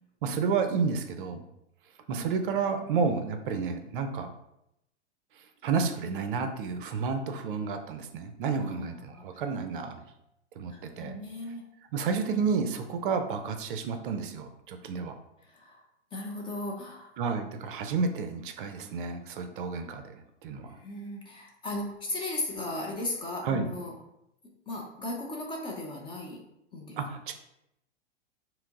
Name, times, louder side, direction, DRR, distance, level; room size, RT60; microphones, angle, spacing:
voice 1, 0.2-1.4 2.1-4.3 5.4-10.0 10.6-11.2 11.9-15.2 17.2-20.8 23.4-23.7 26.9-27.3, right 5 dB, 50° right, 7 dB, 0.5 m, -31 dB
voice 2, 8.6-9.2 10.7-11.6 15.4-15.8 16.1-17.1 20.8-23.9 24.7-26.4 26.7-27.0, left 2 dB, 15° left, -1 dB, 0.4 m, -36 dB
4.3 x 2.0 x 3.6 m, 0.82 s
figure-of-eight pair, 105°, 35 cm